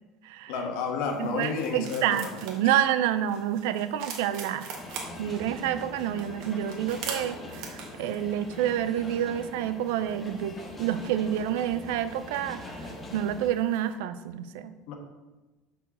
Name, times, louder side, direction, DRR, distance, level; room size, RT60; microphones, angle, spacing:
voice 1, 0.5-2.4 14.9-15.0, left 5 dB, 75° left, 3 dB, 1.3 m, -31 dB
sound 1, 1.1-13.9, right 5 dB, 70° right, 1.4 m, -45 dB
voice 2, 1.2-4.7 5.2-12.6 13.1-14.7, right 11 dB, 90° right, 12 dB, 0.5 m, -28 dB
sound 2, 4.8-13.5, left 2 dB, 20° left, 1.0 m, -42 dB
6.0 x 4.5 x 6.2 m, 1.1 s
cardioid pair, 145°, 0 cm